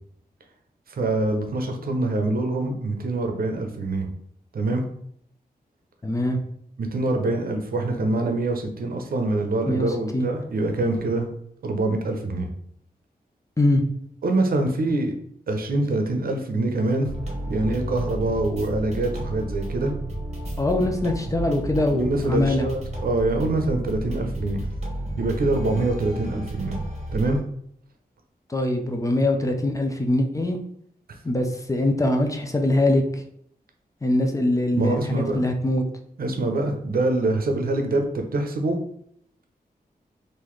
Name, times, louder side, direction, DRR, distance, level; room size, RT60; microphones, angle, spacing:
voice 1, 0.9-4.1 4.5-4.8 6.8-11.3 11.6-12.5 14.2-15.1 15.5-17.1 17.5-19.9 21.9-24.6 25.2-26.8 27.1-27.4 34.7-35.4 36.2-38.8, right 2 dB, 70° right, 4 dB, 0.6 m, -25 dB
voice 2, 6.0-6.4 9.7-10.3 13.6-13.8 20.6-22.7 28.5-30.6 31.2-33.2 34.0-35.8, left 1 dB, 20° left, 3 dB, 0.5 m, -23 dB
sound 1, 17.0-27.4, right 1 dB, 45° right, 1.1 m, -32 dB
3.8 x 2.6 x 3.1 m, 0.68 s
wide cardioid pair, 105°, 16 cm